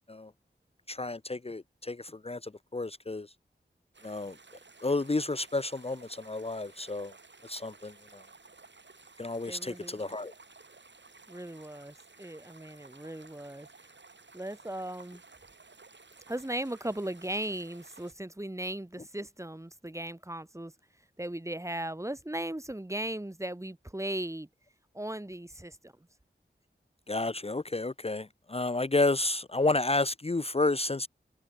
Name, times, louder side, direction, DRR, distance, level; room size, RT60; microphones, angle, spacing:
voice 1, 0.9-3.3 4.0-4.4 4.8-7.1 7.4-8.2 9.2-10.3 27.1-31.1, left 2 dB, 30° left, 0.8 m, -31 dB
sound 1, 3.9-18.1, right 4 dB, 65° right, 3.7 m, -55 dB
voice 2, 9.4-10.0 11.3-13.7 14.3-15.2 16.3-20.7 21.2-24.5 24.9-25.9, right 1 dB, 15° right, 1.4 m, -37 dB
cardioid pair, 45°, 20 cm